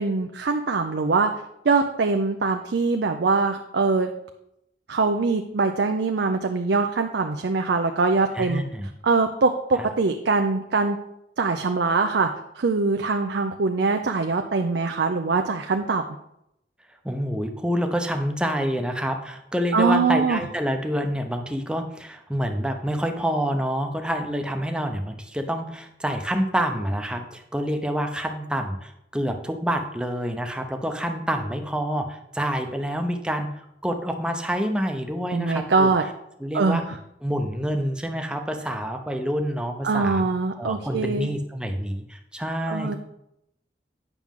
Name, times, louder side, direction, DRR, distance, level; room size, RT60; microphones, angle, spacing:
voice 1, 0.0-1.3 1.6-4.1 4.9-8.6 9.0-11.0 11.4-12.3 12.5-16.0 19.7-20.4 35.3-36.1 36.5-36.8 39.8-41.3 42.7-43.0, right 4 dB, 70° right, 5 dB, 0.5 m, -23 dB
voice 2, 8.4-8.9 17.0-33.5 33.8-35.9 36.4-36.8 37.2-43.0, equal, 5° right, 4 dB, 0.7 m, -27 dB
9.1 x 6.1 x 3.6 m, 0.80 s
head